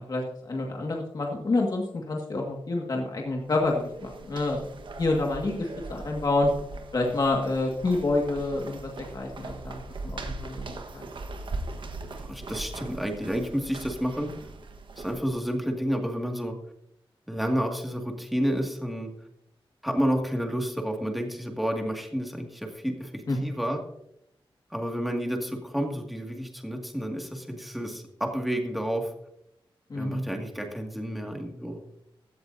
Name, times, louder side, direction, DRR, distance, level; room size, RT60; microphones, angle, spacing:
voice 1, 0.0-4.6 5.0-6.5 6.9-10.6 10.9-11.0 23.3-23.4 29.9-30.3, left 2 dB, 45° left, 0 dB, 1.8 m, -28 dB
sound 1, 3.4-15.5, right 2 dB, 65° right, 1.3 m, -40 dB
voice 2, 12.1-14.3 15.0-16.6 17.3-19.1 19.8-23.8 24.7-29.1 29.9-31.8, equal, ahead, 2 dB, 2.1 m, -30 dB
16.0 x 13.0 x 2.7 m, 0.78 s
wide cardioid pair, 145°, 9 cm